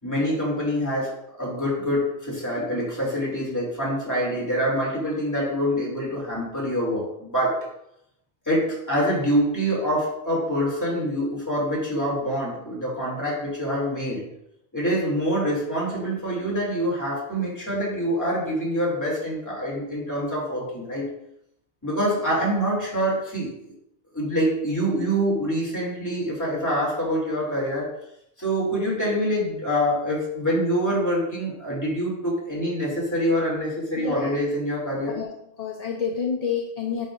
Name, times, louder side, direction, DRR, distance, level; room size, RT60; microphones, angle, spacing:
voice 1, 0.0-7.7 8.5-14.2 14.7-21.1 21.8-23.7 24.1-27.9 28.4-35.2, equal, 15° left, -5 dB, 2.5 m, -25 dB
voice 2, 34.0-34.3 35.1-35.3 35.6-37.1, left 6 dB, 45° left, 2 dB, 0.6 m, -28 dB
9.7 x 5.3 x 2.5 m, 0.78 s
omnidirectional pair, 1.1 m